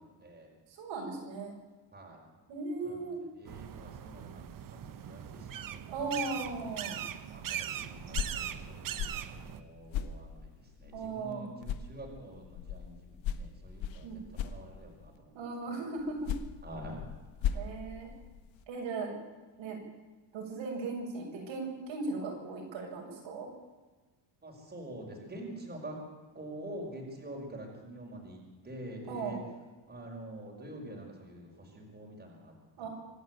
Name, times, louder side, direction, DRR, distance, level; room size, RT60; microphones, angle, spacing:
voice 1, 0.8-1.5 2.5-3.2 5.9-7.0 10.9-11.5 14.0-14.2 15.3-16.3 17.5-18.1 18.7-19.1 19.6-19.8 20.3-23.5 29.1-29.4 32.8-32.9, right 3 dB, 85° right, -1 dB, 7.4 m, -37 dB
voice 2, 1.9-2.3 2.8-5.8 6.9-15.5 16.6-17.0 17.4-17.6 24.4-26.0 26.3-29.4 29.9-32.9, right 1 dB, 20° right, -1 dB, 5.2 m, -46 dB
sound 1, 3.4-9.6, right 10 dB, 45° right, 1.1 m, -40 dB
sound 2, 7.9-11.3 11.6-15.2 16.0-18.6, left 8 dB, 85° left, 1.5 m, -39 dB
25.5 x 11.5 x 9.3 m, 1.3 s
cardioid pair, 145°, 45 cm